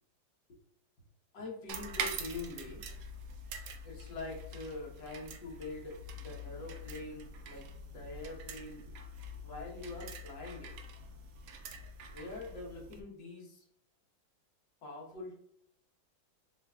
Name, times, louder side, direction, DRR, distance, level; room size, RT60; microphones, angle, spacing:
voice 1, 1.3-2.8 3.8-8.8 9.4-10.7 12.1-13.7 14.8-15.3, left 3 dB, 70° left, -2 dB, 1.9 m, -44 dB
sound 1, 1.7-13.0, right 2 dB, 80° right, 0.7 m, -44 dB
6.8 x 2.6 x 2.3 m, 0.66 s
omnidirectional pair, 2.1 m